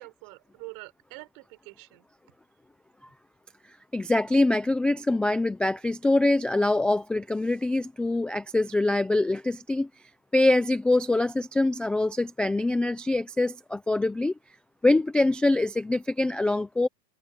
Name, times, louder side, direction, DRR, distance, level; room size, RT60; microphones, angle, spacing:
voice 1, 0.0-2.0, right 36 dB, 55° right, 4.6 m, -45 dB
voice 2, 3.9-9.9 10.3-14.3 14.8-16.9, left 2 dB, ahead, 0.3 m, -24 dB
hypercardioid pair, 125°, 50 cm